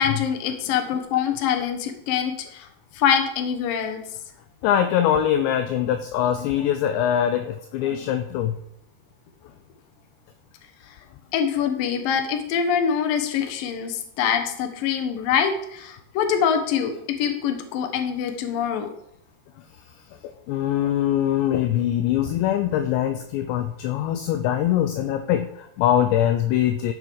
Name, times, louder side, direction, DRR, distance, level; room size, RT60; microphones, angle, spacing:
voice 1, 0.0-2.7 2.9-4.0 10.9-11.0 11.3-18.9, left 8 dB, 65° left, 6 dB, 2.4 m, -24 dB
voice 2, 4.6-8.6 18.0-18.3 20.5-26.9, left 10 dB, 80° left, 7 dB, 2.6 m, -23 dB
14.5 x 5.5 x 4.8 m, 0.75 s
omnidirectional pair, 5.6 m